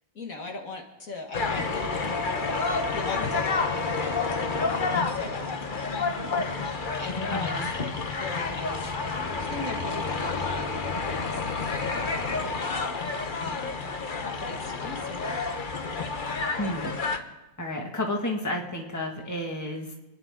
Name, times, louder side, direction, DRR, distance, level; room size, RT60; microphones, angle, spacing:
voice 1, 0.2-2.3 2.9-5.5 7.0-8.9 9.3-12.3 12.6-12.7 14.2-15.5, left 3 dB, 60° left, 2 dB, 1.9 m, -39 dB
sound 1, 1.3-17.2, left 4 dB, 35° left, 1.0 m, -29 dB
voice 2, 7.3-7.7 16.6-16.9 17.6-19.9, left 1 dB, 10° left, 0 dB, 1.7 m, -31 dB
29.5 x 10.0 x 3.7 m, 1.1 s
omnidirectional pair, 1.7 m